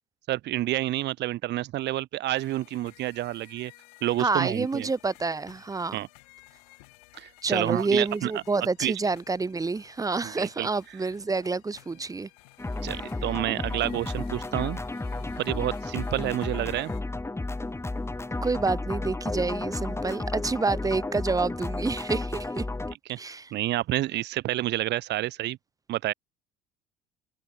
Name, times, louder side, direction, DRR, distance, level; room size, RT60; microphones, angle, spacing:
voice 1, 0.3-3.7 4.0-4.9 5.9-6.1 7.1-8.3 8.8-8.9 10.2-10.7 12.8-14.8 15.4-16.9 23.1-23.2 23.5-25.6 25.9-26.1, right 15 dB, 60° right, 2.4 m, -29 dB
sound 1, 2.3-17.0, left 26 dB, 80° left, 5.3 m, -55 dB
voice 2, 4.2-6.0 7.4-12.3 12.8-12.9 18.4-22.7 23.2-23.5, right 3 dB, 15° right, 1.0 m, -28 dB
sound 2, 12.6-22.9, left 2 dB, 15° left, 3.8 m, -32 dB
hypercardioid pair, 75°, 20 cm